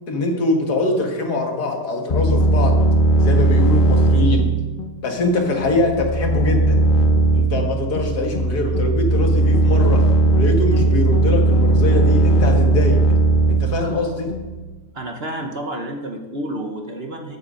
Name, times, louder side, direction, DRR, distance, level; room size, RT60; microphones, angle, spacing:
voice 1, 0.1-2.7 3.2-4.4 5.0-6.8 7.4-10.0 10.4-13.0 13.5-14.3, left 2 dB, 70° left, 2 dB, 2.3 m, -23 dB
sound 1, 2.1-14.6, right 2 dB, 35° left, 1.1 m, -17 dB
voice 2, 14.9-17.4, right 1 dB, 45° right, 3 dB, 1.1 m, -30 dB
13.5 x 7.8 x 5.6 m, 1.2 s
omnidirectional pair, 1.8 m